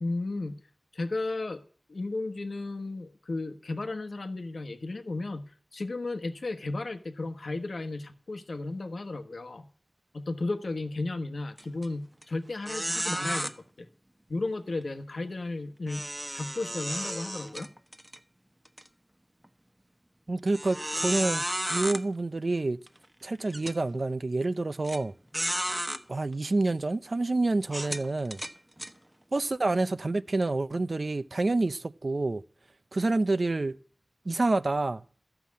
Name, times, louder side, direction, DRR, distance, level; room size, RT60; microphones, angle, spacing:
voice 1, 0.0-0.6 0.9-1.6 1.9-5.4 5.7-9.7 10.1-13.9 14.3-16.0 16.3-17.7, left 2 dB, 90° left, 1.1 m, -34 dB
sound 1, 11.6-11.8 12.2-12.3 12.6-13.5 15.9-18.2 18.6-18.8 19.4-19.5 20.5-22.0 22.9-23.0 23.5-23.8 24.8-25.0 25.3-26.0 26.7-26.8 27.6-28.9, right 1 dB, 20° right, 1.1 m, -33 dB
voice 2, 20.3-22.8 23.2-25.1 26.1-28.4 29.3-32.4 32.9-33.8 34.3-35.2, right 2 dB, 70° right, 0.6 m, -28 dB
13.5 x 5.9 x 8.4 m
wide cardioid pair, 40°, 0 cm